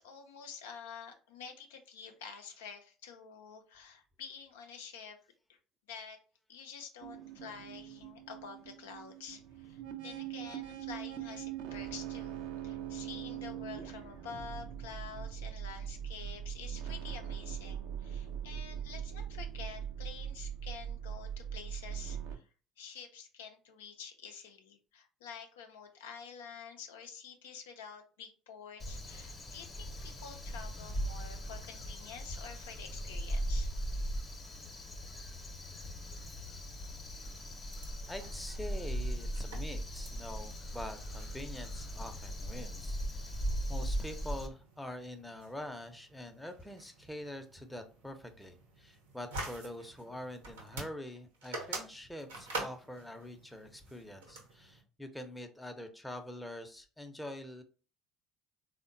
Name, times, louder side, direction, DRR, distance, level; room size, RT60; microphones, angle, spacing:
voice 1, 0.0-5.2 5.5-5.6 5.9-6.2 6.5-22.5 22.8-33.7, left 6 dB, 80° left, 4 dB, 0.4 m, -48 dB
sound 1, 7.0-22.4, right 9 dB, 70° right, 0.4 m, -41 dB
Crow, 28.8-44.5, equal, 30° left, 0.8 m, -39 dB
sound 2, 37.1-54.8, right 2 dB, 85° right, 0.8 m, -48 dB
voice 2, 38.1-43.3 43.7-57.6, left 1 dB, 5° left, 5 dB, 0.6 m, -45 dB
3.5 x 2.1 x 2.6 m, 0.36 s
hypercardioid pair, 65°, 0 cm